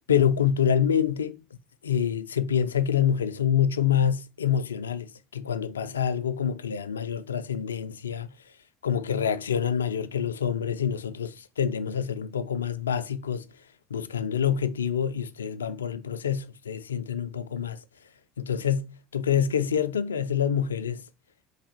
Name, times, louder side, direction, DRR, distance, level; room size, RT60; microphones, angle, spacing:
voice 1, 0.1-1.4 1.8-8.3 8.8-13.4 13.9-17.8 18.4-21.0, left 8 dB, 80° left, 0.3 m, -26 dB
3.8 x 3.3 x 4.3 m
figure-of-eight pair, 65°, 0 cm